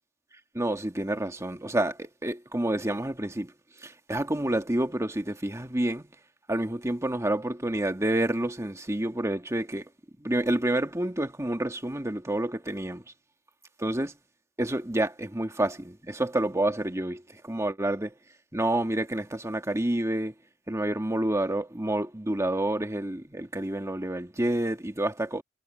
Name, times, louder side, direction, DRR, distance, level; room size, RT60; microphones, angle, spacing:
voice 1, 0.5-3.5 3.8-6.0 6.5-9.8 10.2-13.0 13.8-14.1 14.6-18.1 18.5-20.3 20.7-25.4, right 1 dB, 15° right, 1.6 m, -28 dB
head